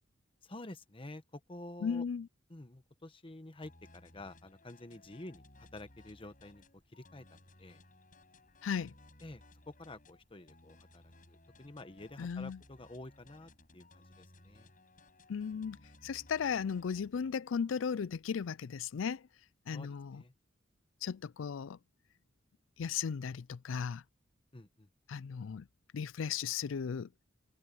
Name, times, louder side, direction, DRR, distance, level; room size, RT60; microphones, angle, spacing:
voice 1, 0.4-2.0 2.5-6.6 6.9-7.8 9.2-14.7 19.7-20.3 24.5-24.9, left 2 dB, 30° left, 1.1 m, -50 dB
voice 2, 1.8-2.3 8.6-8.9 12.2-12.6 15.3-15.8 16.0-19.2 19.7-20.2 21.0-21.8 22.8-24.0 25.1-25.7 25.9-27.1, left 6 dB, 90° left, 0.4 m, -36 dB
sound 1, 3.6-17.3, left 2 dB, 45° left, 6.3 m, -60 dB
head